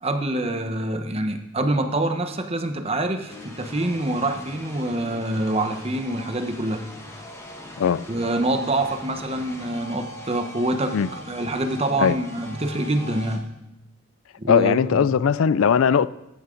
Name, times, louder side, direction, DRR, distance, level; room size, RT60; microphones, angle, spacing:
voice 1, 0.0-6.8 8.1-13.4 14.4-15.0, right 1 dB, 30° right, 6 dB, 1.0 m, -25 dB
sound 1, 3.3-13.4, left 1 dB, 15° left, 1.4 m, -41 dB
voice 2, 14.5-16.1, left 7 dB, 75° left, 18 dB, 0.4 m, -19 dB
14.0 x 11.5 x 3.9 m, 0.92 s
head